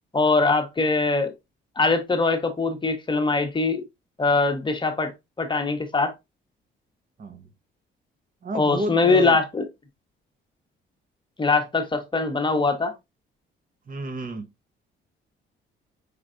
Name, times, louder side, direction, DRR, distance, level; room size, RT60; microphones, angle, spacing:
voice 1, 0.1-1.3 1.8-3.8 4.2-5.1 5.4-6.1 8.5-9.7 11.4-12.9, left 3 dB, 25° left, 0.9 m, -22 dB
voice 2, 8.4-9.4 13.9-14.5, right 2 dB, 45° right, 1.0 m, -30 dB
5.0 x 3.1 x 2.5 m
cardioid pair, 90°, 20 cm